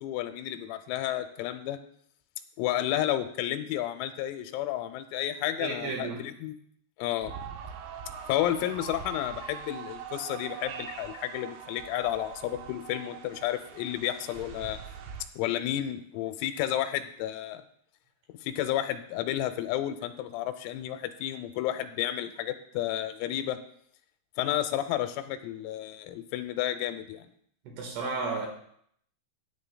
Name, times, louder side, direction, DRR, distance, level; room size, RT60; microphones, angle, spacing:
voice 1, 0.0-1.8 2.6-6.6 7.0-7.3 8.3-14.8 15.4-17.6 18.4-23.6 24.4-27.3, left 12 dB, 90° left, 9 dB, 3.5 m, -31 dB
voice 2, 5.6-6.3 27.6-28.5, right 3 dB, 65° right, 1 dB, 3.3 m, -33 dB
sound 1, 7.2-15.3, right 7 dB, 90° right, 3.8 m, -42 dB
15.0 x 10.0 x 2.3 m, 0.66 s
omnidirectional pair, 5.9 m